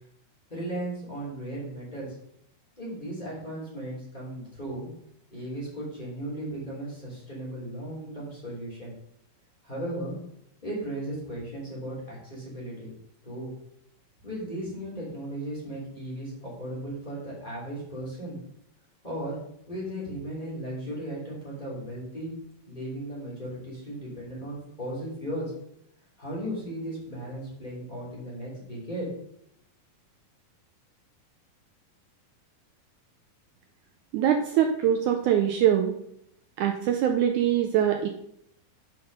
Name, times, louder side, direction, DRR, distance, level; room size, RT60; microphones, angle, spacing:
voice 1, 0.5-2.1 2.8-4.9 5.3-8.9 9.6-10.2 10.6-12.9 13.2-13.5 14.2-18.4 19.0-19.4 19.7-22.3 22.7-25.5 26.2-29.1, right 1 dB, 15° left, -6 dB, 3.2 m, -36 dB
voice 2, 34.1-35.9 36.6-38.1, right 9 dB, 80° right, 5 dB, 1.8 m, -23 dB
7.9 x 5.4 x 5.4 m, 0.74 s
omnidirectional pair, 4.1 m